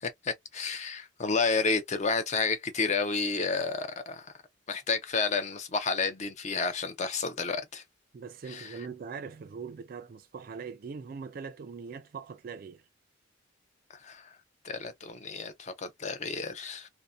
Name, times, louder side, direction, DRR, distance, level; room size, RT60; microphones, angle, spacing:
voice 1, 0.0-4.3 4.7-7.8 8.5-8.8 14.0-14.3 14.6-16.9, left 4 dB, 35° left, 0.5 m, -31 dB
voice 2, 8.1-12.8, right 5 dB, 50° right, 0.3 m, -41 dB
2.6 x 2.1 x 2.2 m
head